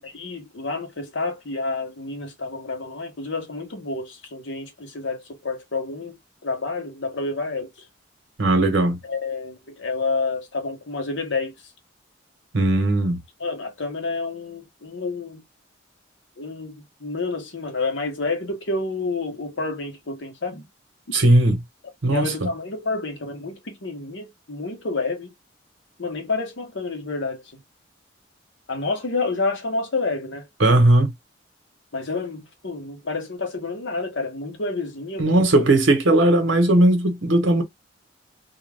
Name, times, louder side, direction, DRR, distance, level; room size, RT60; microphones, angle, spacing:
voice 1, 0.0-7.9 9.0-11.7 13.4-15.4 16.4-20.7 22.1-25.3 26.0-27.6 28.7-30.5 31.9-35.5, left 3 dB, 65° left, 0.9 m, -29 dB
voice 2, 8.4-9.0 12.5-13.2 21.1-21.6 22.0-22.5 30.6-31.1 35.2-37.6, right 1 dB, 75° right, 0.9 m, -18 dB
2.3 x 2.3 x 3.2 m
head